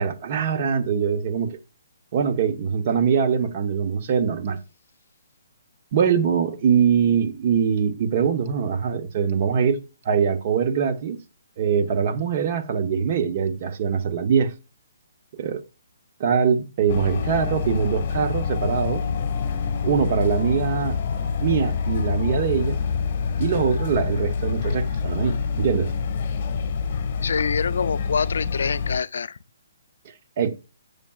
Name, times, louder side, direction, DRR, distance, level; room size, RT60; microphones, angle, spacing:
voice 1, 0.0-1.6 2.1-4.6 5.9-9.8 10.0-11.2 11.6-14.5 15.4-15.6 16.2-19.0 19.8-21.0 21.4-22.8 23.4-25.9 30.4-30.6, right 7 dB, 40° right, 1.0 m, -23 dB
sound 1, 16.9-29.0, left 5 dB, 40° left, 1.3 m, -26 dB
voice 2, 27.2-29.4, left 6 dB, 70° left, 0.4 m, -25 dB
8.5 x 6.7 x 2.3 m
hypercardioid pair, 160°, 0 cm